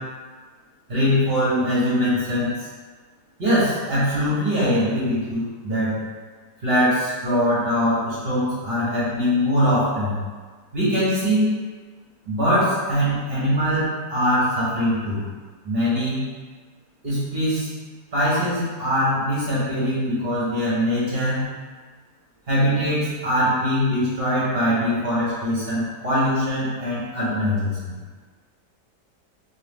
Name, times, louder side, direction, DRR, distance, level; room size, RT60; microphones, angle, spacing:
voice 1, 0.9-2.7 3.4-5.9 6.6-10.2 10.7-11.5 12.2-15.2 15.6-16.2 17.0-17.7 18.1-21.5 22.5-27.9, equal, 35° right, -10 dB, 1.6 m, -22 dB
3.7 x 3.2 x 3.6 m, 1.5 s
omnidirectional pair, 1.8 m